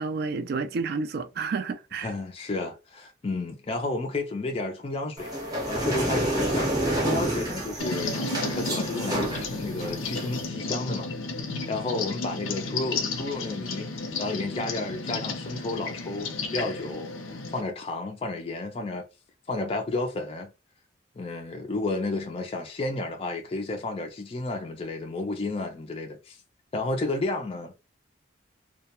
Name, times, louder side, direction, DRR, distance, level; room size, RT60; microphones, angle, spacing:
voice 1, 0.0-2.1, right 4 dB, 50° right, 0.3 m, -30 dB
voice 2, 2.0-5.3 5.7-6.7 7.0-8.2 8.5-11.1 11.7-13.9 14.2-17.1 17.5-19.1 19.5-20.5 21.2-26.4 26.7-27.7, left 2 dB, 30° left, 0.3 m, -32 dB
sound 1, 5.2-10.4, right 1 dB, 20° right, 0.7 m, -29 dB
sound 2, 7.8-17.6, left 3 dB, 80° left, 0.6 m, -33 dB
2.2 x 2.1 x 2.8 m
head